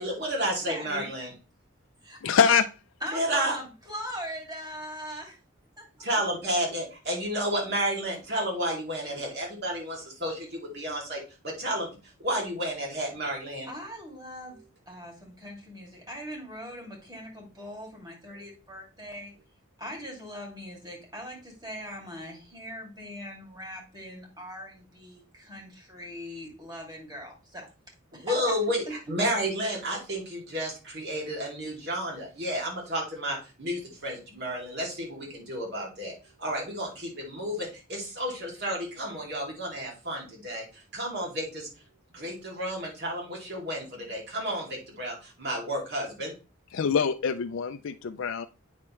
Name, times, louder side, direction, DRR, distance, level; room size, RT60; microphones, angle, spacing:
voice 1, 0.0-1.3 3.1-3.6 6.0-11.9 12.2-13.7 28.1-41.7 42.1-46.3, equal, 50° right, -1 dB, 2.7 m, -31 dB
voice 2, 0.7-1.1 2.0-2.2 3.0-5.4 5.8-5.9 13.7-14.6 14.9-19.3 19.8-27.7 28.1-28.5 29.1-29.2, equal, 20° right, -1 dB, 2.5 m, -40 dB
voice 3, 2.2-2.7 46.7-48.5, left 6 dB, 70° left, 7 dB, 0.4 m, -24 dB
8.5 x 5.9 x 3.2 m, 0.33 s
head